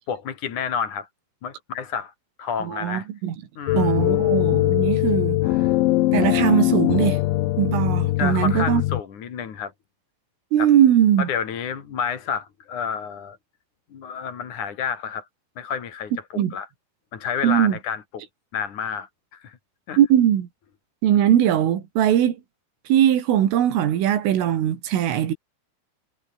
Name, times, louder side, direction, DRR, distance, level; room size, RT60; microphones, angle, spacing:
voice 1, 0.1-1.1 1.4-2.1 2.4-3.1 3.6-4.0 8.2-9.7 10.6-10.7 11.2-13.4 13.9-15.2 15.6-16.7 17.1-18.0 18.5-19.6 19.9-20.0, left 7 dB, 45° left, 3.3 m, -30 dB
voice 2, 2.6-3.4 3.7-5.4 6.1-7.2 7.6-8.8 10.5-11.3 16.4-16.5 17.4-17.8 20.0-20.5 21.0-22.4 22.9-25.3, right 10 dB, 80° right, 5.2 m, -20 dB
sound 1, 3.7-9.0, left 17 dB, 80° left, 3.2 m, -21 dB
omnidirectional pair, 5.7 m